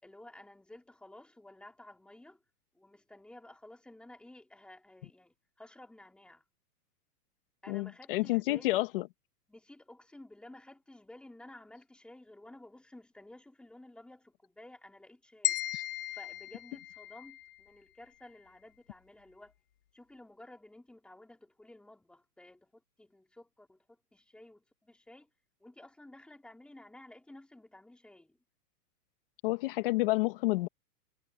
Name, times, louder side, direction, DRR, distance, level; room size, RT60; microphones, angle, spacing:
voice 1, 0.0-2.4 2.7-6.4 7.6-8.9 9.5-15.6 16.1-19.5 19.9-25.3 25.6-28.4, left 1 dB, ahead, 3.6 m, -54 dB
voice 2, 7.7-9.0 15.7-15.8 29.4-30.7, left 20 dB, 35° left, 1.7 m, -29 dB
sound 1, 15.4-17.6, left 14 dB, 75° left, 4.8 m, -36 dB
hypercardioid pair, 170°, 47 cm